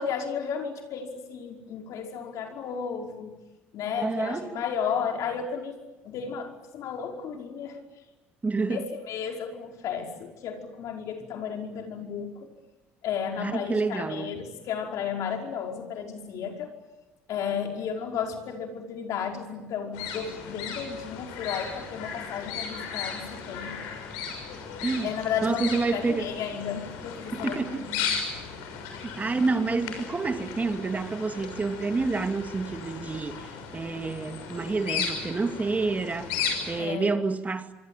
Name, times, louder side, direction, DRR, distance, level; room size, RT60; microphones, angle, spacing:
voice 1, 0.0-3.3 3.7-5.8 6.0-7.8 8.7-12.5 13.0-16.8 17.3-23.7 25.0-28.0 36.8-37.2, left 7 dB, 65° left, 5.2 m, -33 dB
voice 2, 4.0-4.5 8.4-8.8 13.4-14.3 24.8-25.1 25.4-26.3 27.3-27.8 29.2-37.7, right 3 dB, 25° right, 2.3 m, -28 dB
sound 1, 19.9-36.8, left 6 dB, 80° left, 6.4 m, -36 dB
26.0 x 25.5 x 9.0 m
hypercardioid pair, 70°, 6 cm